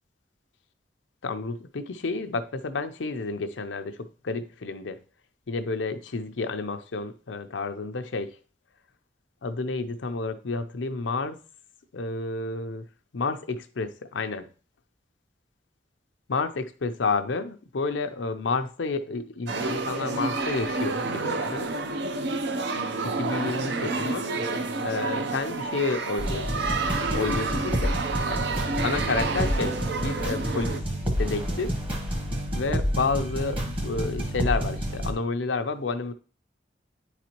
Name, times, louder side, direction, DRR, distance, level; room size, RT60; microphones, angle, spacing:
voice 1, 1.2-5.0 5.5-8.3 9.4-11.4 11.9-12.8 13.1-14.4 16.3-21.7 23.0-24.3 24.8-28.0 28.2-28.5 28.8-29.8 30.0-30.8 31.2-31.7 32.5-36.1, left 4 dB, 90° left, 0.6 m, -30 dB
sound 1, 19.5-30.8, right 3 dB, 65° right, 0.7 m, -29 dB
sound 2, 26.2-35.1, equal, 30° right, 1.3 m, -29 dB
9.2 x 4.0 x 3.0 m
head